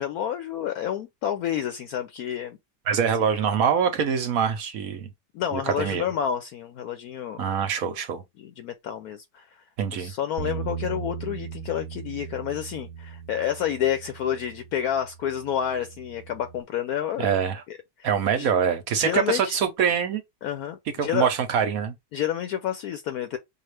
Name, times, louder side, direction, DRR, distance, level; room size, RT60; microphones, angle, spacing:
voice 1, 0.0-2.6 5.3-7.4 8.4-9.6 9.9-17.3 17.7-18.1 18.4-18.5 19.0-19.5 20.4-21.3 22.1-23.4, left 10 dB, 70° left, 1.0 m, -29 dB
voice 2, 2.9-5.1 5.5-6.0 7.4-8.2 9.8-10.1 17.2-17.6 18.0-20.2 21.0-21.9, right 7 dB, 65° right, 1.1 m, -24 dB
Bass guitar, 10.4-16.6, right 8 dB, 85° right, 1.2 m, -38 dB
5.6 x 2.4 x 3.3 m
omnidirectional pair, 1.8 m